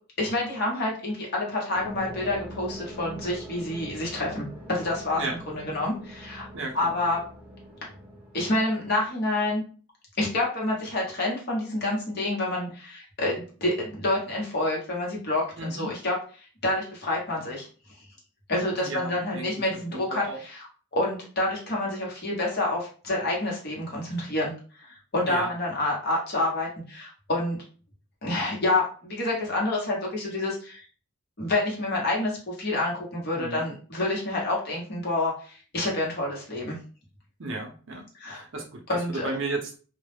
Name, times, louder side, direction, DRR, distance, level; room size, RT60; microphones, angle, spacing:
voice 1, 0.2-5.2 5.5-6.4 6.7-7.2 8.3-9.6 10.2-16.1 16.6-17.7 18.5-24.5 24.8-27.6 28.2-30.8 31.4-36.8 38.1-38.4 38.9-39.3, left 2 dB, 45° left, -3 dB, 0.9 m, -28 dB
sound 1, 1.7-9.1, equal, 5° right, 0.4 m, -43 dB
voice 2, 6.5-6.9 15.6-15.9 18.8-19.7 19.9-20.4 25.2-25.5 33.3-33.7 37.4-38.8 39.2-39.8, right 2 dB, 60° right, 2 dB, 0.6 m, -34 dB
2.3 x 2.0 x 3.1 m, 0.39 s
head